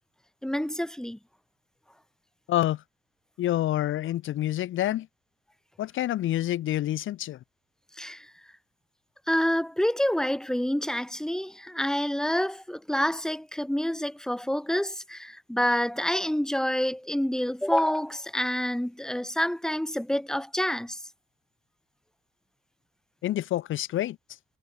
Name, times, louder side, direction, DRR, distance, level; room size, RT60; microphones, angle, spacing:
voice 1, 0.4-1.2 8.0-8.3 9.3-21.0, equal, 5° left, 4.6 m, -28 dB
voice 2, 2.5-2.8 3.4-5.1 5.8-7.4 23.2-24.2, left 13 dB, 80° left, 6.6 m, -27 dB
cardioid pair, 90°, 20 cm